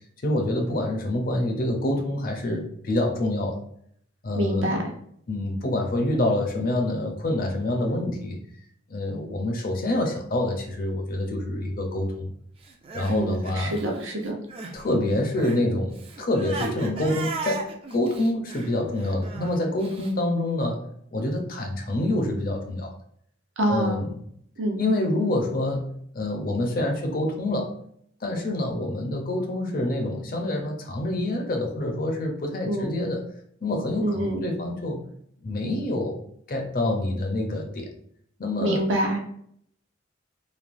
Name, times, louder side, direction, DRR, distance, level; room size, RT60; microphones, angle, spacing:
voice 1, 0.2-3.6 4.2-4.8 5.3-8.4 8.9-12.2 12.9-13.8 14.7-20.8 21.1-22.9 23.7-24.2 24.8-27.7 28.2-33.2 33.6-35.0 35.4-36.2 36.5-37.9 38.4-38.8, left 1 dB, 45° left, 3 dB, 0.5 m, -26 dB
voice 2, 4.3-4.8 13.1-14.4 23.6-24.1 24.6-24.8 32.6-33.0 34.0-34.5 38.6-39.2, right 1 dB, 80° right, 1 dB, 0.7 m, -26 dB
Crying sobbing, 12.6-14.8 15.1-20.1, right 4 dB, 30° right, 0.3 m, -37 dB
3.2 x 2.1 x 2.5 m, 0.67 s
head